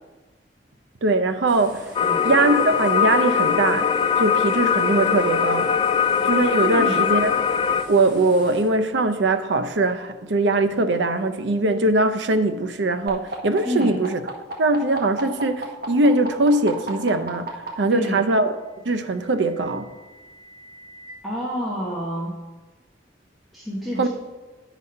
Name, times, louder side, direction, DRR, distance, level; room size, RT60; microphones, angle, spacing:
voice 1, 1.0-1.8 2.2-3.9 4.2-5.7 6.2-7.4 7.9-14.2 14.6-18.5 18.8-19.8 24.0-24.1, right 2 dB, 75° right, 9 dB, 0.6 m, -21 dB
sound 1, 1.5-8.6, equal, 25° right, 2.7 m, -43 dB
sound 2, 1.9-7.8, left 7 dB, 30° left, 0.3 m, -21 dB
voice 2, 6.6-7.0 13.6-14.0 17.9-18.2 21.2-22.4 23.5-24.1, equal, ahead, -7 dB, 1.2 m, -28 dB
sound 3, 13.1-17.7 18.8-21.1, right 2 dB, 55° right, 1.2 m, -35 dB
9.4 x 4.1 x 5.4 m, 1.2 s
head